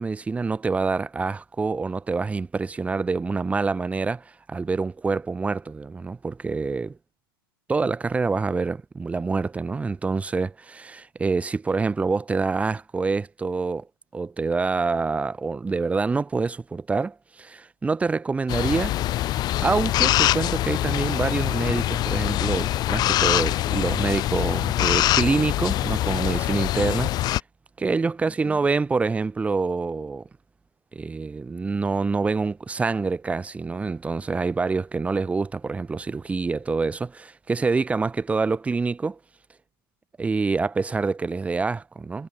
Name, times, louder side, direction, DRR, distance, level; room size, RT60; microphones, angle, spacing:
voice 1, 0.0-6.9 7.7-13.9 14.1-18.9 19.6-27.3 27.8-30.3 30.9-39.2 40.2-42.3, right 4 dB, 10° right, 1.1 m, -26 dB
sound 1, 18.5-27.4, left 14 dB, 35° left, 1.7 m, -24 dB
hypercardioid pair, 115°, 12 cm